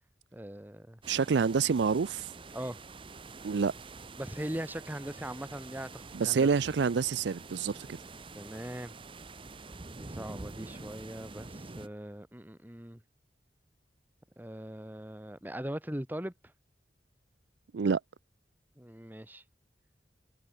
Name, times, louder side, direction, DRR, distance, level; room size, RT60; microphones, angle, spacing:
voice 1, 0.3-1.0 2.5-2.8 4.2-6.5 8.3-8.9 10.0-13.0 14.4-16.3 18.8-19.4, right 1 dB, 10° right, 1.3 m, -40 dB
sound 1, 1.0-11.9, right 3 dB, 30° right, 0.8 m, -47 dB
voice 2, 1.1-2.3 3.4-3.7 6.1-7.9 17.7-18.0, right 5 dB, 75° right, 0.5 m, -27 dB
head